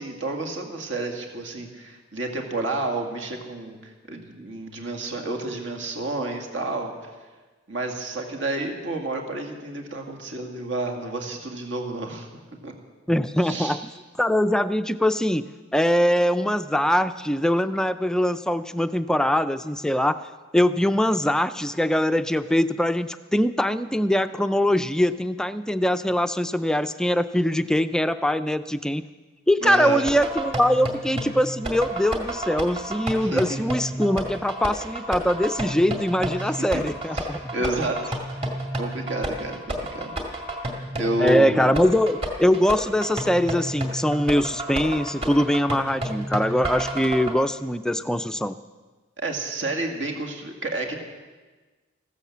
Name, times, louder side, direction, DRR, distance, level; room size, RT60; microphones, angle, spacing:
voice 1, 0.0-6.9 7.7-12.3 12.6-12.7 13.4-13.8 29.6-30.0 33.2-33.4 36.4-36.8 37.1-40.1 41.0-41.7 49.2-50.9, right 2 dB, 65° right, 2 dB, 2.2 m, -30 dB
voice 2, 13.1-13.9 14.2-15.4 15.7-20.2 20.5-29.0 29.5-37.5 41.2-48.6, equal, 5° left, 10 dB, 0.4 m, -22 dB
sound 1, 29.8-47.3, right 1 dB, 30° right, 2.3 m, -31 dB
15.0 x 12.5 x 7.3 m, 1.3 s
head